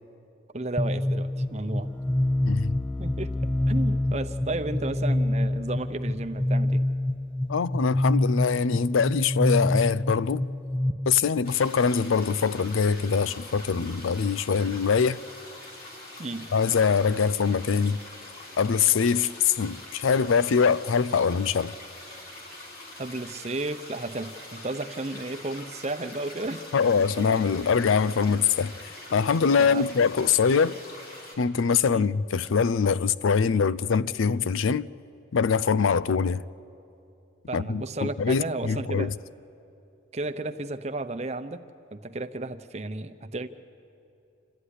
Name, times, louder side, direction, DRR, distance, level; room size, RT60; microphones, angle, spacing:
voice 1, 0.5-1.9 3.0-3.3 3.7-6.8 16.2-16.5 23.0-26.6 27.0-27.2 29.6-29.8 31.9-32.1 37.5-39.1 40.1-41.6 41.9-43.5, right 2 dB, 35° right, 0.7 m, -33 dB
sound 1, 0.8-10.9, left 1 dB, 5° left, 0.6 m, -26 dB
voice 2, 2.4-2.7 7.5-10.4 11.1-15.2 16.5-18.0 18.6-21.7 26.7-30.8 31.4-34.9 35.3-36.4 37.5-39.1, left 6 dB, 90° left, 0.5 m, -23 dB
sound 2, 11.4-31.4, left 1 dB, 50° left, 3.7 m, -44 dB
27.5 x 13.0 x 10.0 m
head